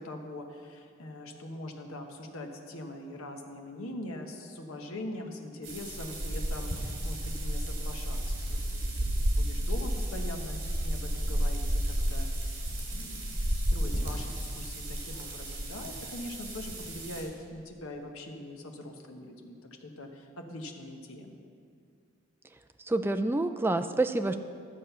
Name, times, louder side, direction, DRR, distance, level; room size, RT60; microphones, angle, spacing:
voice 1, 0.0-8.9 9.4-12.7 12.9-21.4, left 1 dB, 80° left, 3 dB, 1.1 m, -42 dB
sound 1, 5.6-17.2, equal, 60° right, 2.8 m, -32 dB
voice 2, 22.9-24.4, right 2 dB, 10° right, 8 dB, 0.3 m, -27 dB
12.0 x 7.4 x 5.6 m, 2.3 s
head